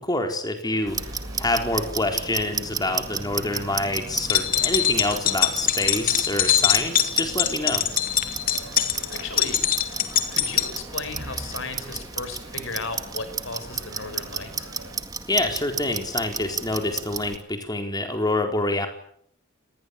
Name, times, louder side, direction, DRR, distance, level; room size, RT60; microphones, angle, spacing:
voice 1, 0.0-1.0 1.4-7.8 15.3-18.9, left 2 dB, 20° left, 5 dB, 4.4 m, -26 dB
sound 1, 0.6-15.0, right 2 dB, 85° right, 7.1 m, -47 dB
Clock, 0.9-17.4, right 5 dB, 15° right, 1.9 m, -33 dB
sound 2, 4.1-10.7, left 10 dB, 40° left, 2.8 m, -22 dB
voice 2, 9.1-9.6 10.3-14.7, left 3 dB, 60° left, 10 dB, 5.6 m, -35 dB
29.0 x 20.5 x 8.6 m, 0.66 s
head